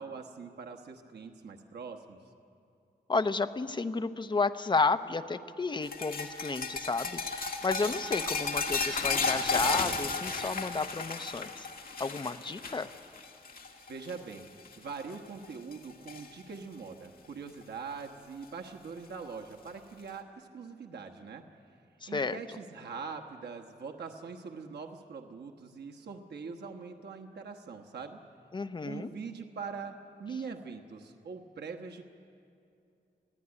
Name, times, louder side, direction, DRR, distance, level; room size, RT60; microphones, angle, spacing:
voice 1, 0.0-2.2 13.9-14.5 14.8-21.4 22.1-28.2 28.8-32.0, right 5 dB, 90° right, 3 dB, 1.3 m, -43 dB
voice 2, 3.1-11.7 12.0-12.9 22.0-22.4 28.5-29.1, left 4 dB, 25° left, 10 dB, 0.7 m, -32 dB
sound 1, 5.8-14.4 14.6-15.0 15.4-16.3 17.6-17.7 19.0-19.1, left 4 dB, 60° left, 1.9 m, -34 dB
22.5 x 15.5 x 9.8 m, 2.6 s
wide cardioid pair, 130°, 17 cm